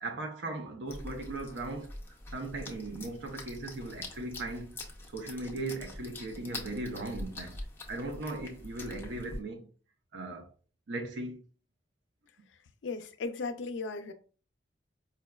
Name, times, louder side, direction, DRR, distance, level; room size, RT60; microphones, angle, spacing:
voice 1, 0.0-4.8 5.1-7.6 7.9-9.7 10.1-10.5 10.9-11.4, right 2 dB, 80° right, 0.6 m, -38 dB
sound 1, 0.9-9.4, left 2 dB, 15° left, 0.5 m, -44 dB
voice 2, 12.5-14.1, left 3 dB, 85° left, 0.4 m, -37 dB
4.6 x 2.2 x 2.3 m
head